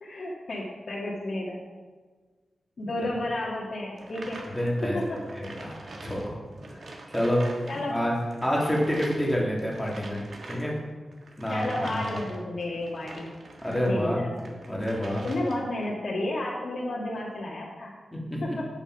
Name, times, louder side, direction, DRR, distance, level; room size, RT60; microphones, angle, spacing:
voice 1, 0.0-1.6 2.8-4.4 4.8-5.2 7.7-8.0 11.5-13.3 13.8-14.6 15.2-17.9 18.4-18.7, left 1 dB, 55° left, -5 dB, 1.8 m, -32 dB
sound 1, 4.0-13.9 14.3-15.8, right 2 dB, 60° right, 1.5 m, -45 dB
voice 2, 4.5-5.0 5.3-6.4 6.8-6.9 7.1-7.5 7.9-8.1 8.4-10.7 11.4-12.2 13.6-14.2 14.7-15.3 18.1-18.6, equal, 10° left, -3 dB, 2.4 m, -28 dB
8.8 x 7.1 x 5.9 m, 1.4 s
wide cardioid pair, 135°, 0 cm